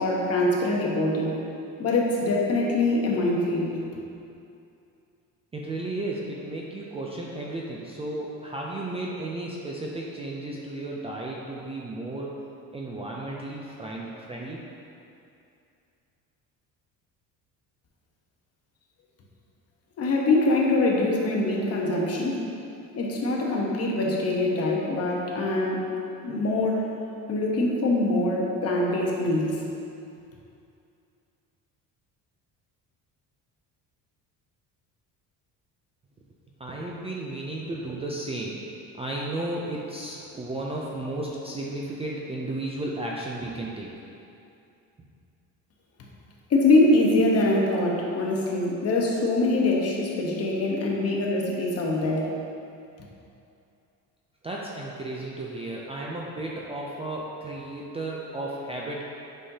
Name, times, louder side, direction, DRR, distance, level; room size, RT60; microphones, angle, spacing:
voice 1, 0.0-1.4 1.8-3.8 20.0-22.4 23.0-25.9 26.2-26.9 27.3-29.6 46.5-52.3, left 2 dB, 40° left, -2 dB, 1.1 m, -24 dB
voice 2, 5.5-12.4 12.7-14.6 36.6-38.6 39.0-43.9 54.4-59.1, right 2 dB, 15° right, -3 dB, 0.4 m, -34 dB
8.4 x 5.5 x 2.8 m, 2.6 s
cardioid pair, 150°, 36 cm